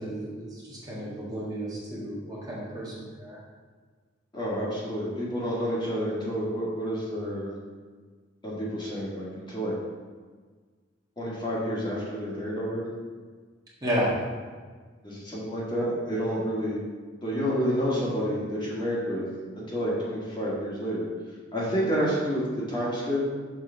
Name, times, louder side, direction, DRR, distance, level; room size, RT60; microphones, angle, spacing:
voice 1, 0.0-3.4 13.8-14.1, equal, 20° right, -7 dB, 1.7 m, -32 dB
voice 2, 4.3-7.5 8.4-9.7 11.2-12.8 15.0-16.8 17.2-19.3 19.5-21.0 21.5-23.2, equal, 25° left, -7 dB, 2.0 m, -29 dB
6.5 x 4.8 x 4.6 m, 1.5 s
head